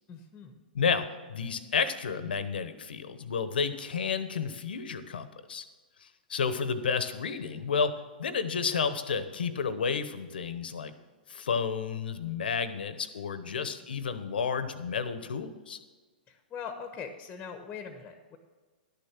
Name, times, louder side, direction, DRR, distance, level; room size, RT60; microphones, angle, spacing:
voice 1, 0.1-0.6 13.4-13.9 16.3-18.4, left 6 dB, 20° left, 7 dB, 1.1 m, -42 dB
voice 2, 0.7-5.6 6.0-10.9 11.3-15.8, left 6 dB, 75° left, 12 dB, 1.0 m, -31 dB
11.5 x 6.8 x 6.1 m, 1.4 s
hypercardioid pair, 120°, 5 cm